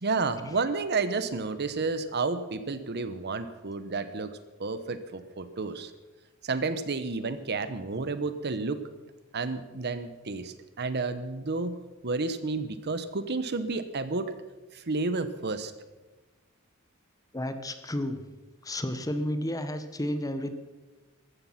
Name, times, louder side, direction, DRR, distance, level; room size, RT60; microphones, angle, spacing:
voice 1, 0.0-4.3 4.6-5.9 6.4-8.8 9.3-11.8 12.0-14.3 14.9-15.7, right 3 dB, 50° right, 12 dB, 0.9 m, -31 dB
voice 2, 17.3-18.2 18.6-20.5, left 1 dB, 15° left, 9 dB, 1.0 m, -32 dB
15.0 x 13.5 x 5.8 m, 1.2 s
head